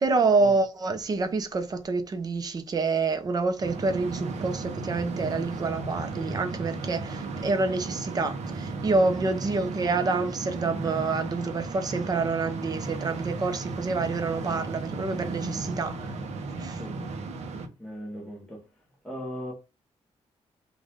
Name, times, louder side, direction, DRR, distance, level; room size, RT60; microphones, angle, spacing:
voice 1, 0.0-16.1 16.6-16.8, right 3 dB, 35° right, 0.8 m, -27 dB
sound 1, 3.6-17.7, right 3 dB, 80° right, 0.9 m, -35 dB
voice 2, 17.8-18.6 19.0-19.5, equal, 5° left, 1.2 m, -38 dB
5.2 x 2.5 x 3.6 m
cardioid pair, 135°, 11 cm